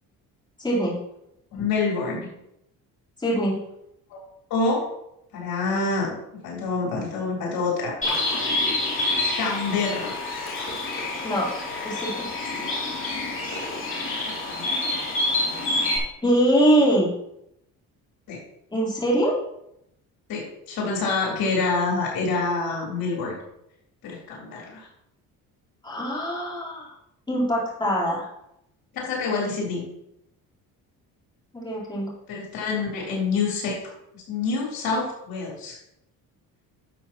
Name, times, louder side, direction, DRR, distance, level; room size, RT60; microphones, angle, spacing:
voice 1, 0.6-1.0 3.2-3.6 11.2-11.5 11.8-12.3 16.2-17.1 18.7-19.3 25.8-26.9 27.3-28.3 31.5-32.1, right 1 dB, 10° left, -6 dB, 3.9 m, -23 dB
voice 2, 1.5-2.3 4.1-4.2 4.5-4.8 5.3-6.1 6.4-7.9 9.4-10.3 14.2-15.0 18.3-18.4 20.3-23.4 24.0-24.9 28.9-29.8 32.3-33.8 34.1-35.8, left 4 dB, 75° left, -3 dB, 3.8 m, -27 dB
Bird, 8.0-16.0, left 2 dB, 35° left, 3.0 m, -27 dB
12.0 x 7.1 x 3.0 m, 0.80 s
cardioid pair, 105°, 36 cm